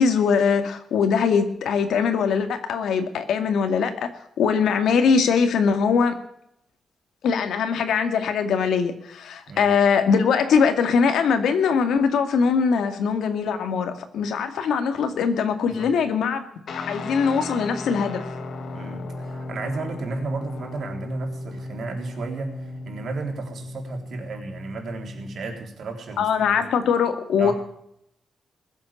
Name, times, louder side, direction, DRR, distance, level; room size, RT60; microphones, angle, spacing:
voice 1, 0.0-4.1 4.4-6.1 7.2-16.4 16.9-18.2 26.2-27.5, left 6 dB, 85° left, 7 dB, 2.3 m, -21 dB
Guitar, 16.7-25.6, left 2 dB, 55° left, 2.0 m, -35 dB
voice 2, 18.7-26.6 27.4-27.5, right 3 dB, 50° right, 3 dB, 3.7 m, -34 dB
21.5 x 8.0 x 7.3 m, 0.74 s
wide cardioid pair, 165°, 0 cm